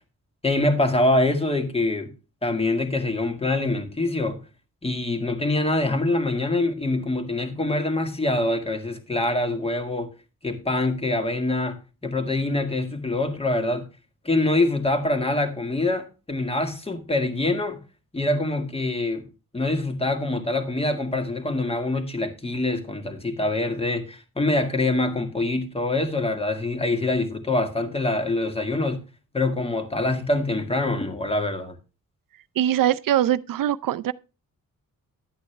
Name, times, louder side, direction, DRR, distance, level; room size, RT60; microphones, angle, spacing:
voice 1, 0.4-2.1 2.4-4.4 4.8-10.1 10.4-13.9 14.2-17.8 18.1-19.3 19.5-29.0 29.3-31.8, left 2 dB, 15° left, 1.7 m, -25 dB
voice 2, 32.6-34.1, right 11 dB, 75° right, 0.6 m, -22 dB
11.5 x 8.5 x 3.3 m
wide cardioid pair, 135°, 34 cm